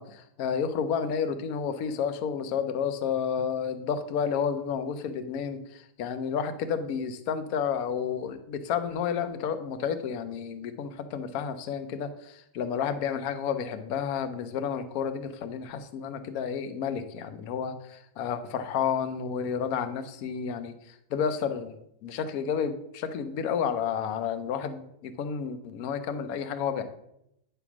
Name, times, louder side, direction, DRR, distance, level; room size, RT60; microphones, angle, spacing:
voice 1, 0.0-26.8, left 7 dB, 60° left, 9 dB, 1.0 m, -31 dB
9.7 x 3.4 x 5.9 m, 0.78 s
omnidirectional pair, 1.9 m